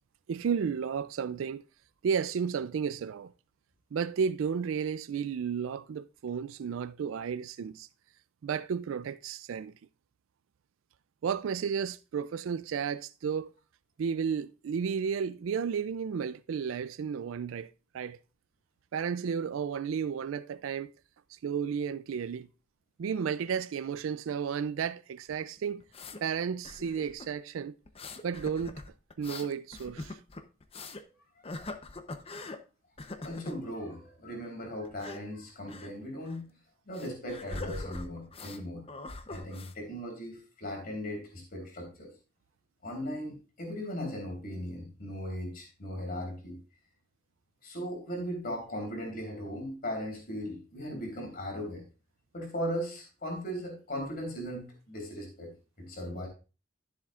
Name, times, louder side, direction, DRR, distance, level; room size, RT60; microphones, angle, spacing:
voice 1, 0.3-1.6 2.0-3.3 3.9-7.9 8.4-9.8 11.2-13.5 14.0-18.2 18.9-20.9 21.3-22.5 23.0-25.8 26.2-27.7 28.2-28.8 29.2-30.2, right 7 dB, 90° right, 0.4 m, -33 dB
sound 1, 25.3-26.2 26.6-27.3 27.8-31.0 31.4-32.6 33.0-33.6 34.8-35.2 35.7-35.9 36.2-36.4 36.9-38.6 38.9-39.7, left 2 dB, 30° left, 0.7 m, -42 dB
voice 2, 33.1-36.5 36.9-38.8 39.3-42.1 42.8-46.6 47.6-51.8 52.3-55.5 55.8-56.3, equal, 50° left, 3.4 m, -38 dB
13.0 x 7.3 x 2.4 m
head